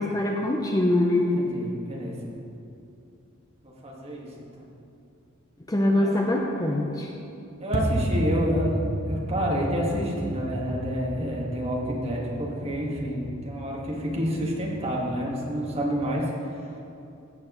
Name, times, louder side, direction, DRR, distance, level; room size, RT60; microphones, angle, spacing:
voice 1, 0.0-1.4 5.7-7.1, left 1 dB, 15° left, 0 dB, 0.6 m, -23 dB
voice 2, 1.3-2.3 3.6-4.3 4.6-4.7 5.9-6.1 7.6-16.2, equal, 30° right, -3 dB, 1.7 m, -29 dB
sound 1, 7.7-16.0, equal, 50° right, 1.2 m, -33 dB
15.0 x 7.7 x 3.1 m, 2.7 s
head